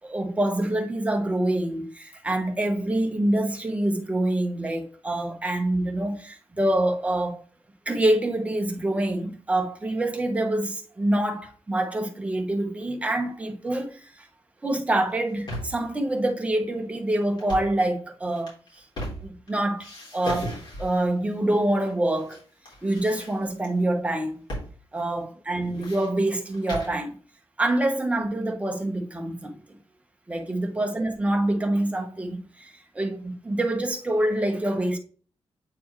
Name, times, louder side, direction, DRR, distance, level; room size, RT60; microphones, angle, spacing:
voice 1, 0.0-7.4 7.9-14.3 14.6-18.8 19.2-22.4 22.8-24.4 24.9-27.2 27.6-29.6 30.3-35.0, right 1 dB, 15° right, 1.1 m, -26 dB
sound 1, 15.1-15.9 17.3-17.8 18.3-19.5 19.8-21.1 21.8-22.4 22.6-23.7 24.5-24.7 25.0-25.1 25.5-27.0, left 1 dB, 50° left, 3.5 m, -36 dB
8.4 x 4.3 x 3.2 m
wide cardioid pair, 180°, 10 cm